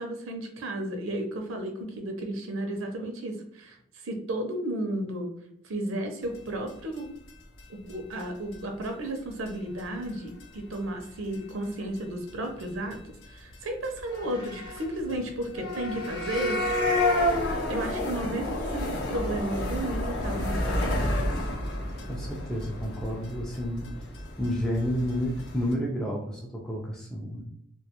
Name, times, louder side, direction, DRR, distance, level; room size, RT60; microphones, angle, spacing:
voice 1, 0.0-5.3 5.6-7.1 7.7-13.0 13.3-16.9 17.7-21.3, right 1 dB, 85° right, 4 dB, 0.5 m, -33 dB
sound 1, 6.7-6.8 7.0-7.1 7.3-7.4 7.6-7.7 7.9-8.0 8.2-8.3 8.5-8.9 9.2-9.3 9.5-9.6 9.8-10.0 10.4-10.5 10.7-11.4 11.6-12.0 12.3-12.4 12.6-12.7 12.9-13.0 13.2-13.3 13.5-13.6 13.8-25.7, left 1 dB, 70° left, 0.6 m, -30 dB
voice 2, 22.1-23.9 24.4-27.4, equal, 5° left, -4 dB, 0.3 m, -30 dB
2.3 x 2.2 x 2.8 m, 0.71 s
head